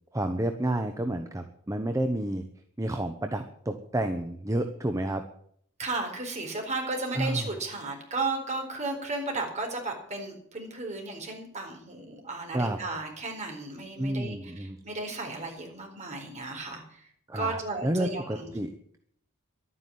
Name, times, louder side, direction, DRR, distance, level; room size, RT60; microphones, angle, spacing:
voice 1, 0.1-2.4 2.8-5.2 7.1-7.5 12.5-12.8 14.0-14.8 17.3-19.0, right 1 dB, 15° right, 6 dB, 1.0 m, -30 dB
voice 2, 5.8-14.5 14.8-17.0 17.3-18.5, right 3 dB, 35° right, 2 dB, 4.3 m, -34 dB
12.0 x 9.7 x 9.3 m, 0.64 s
head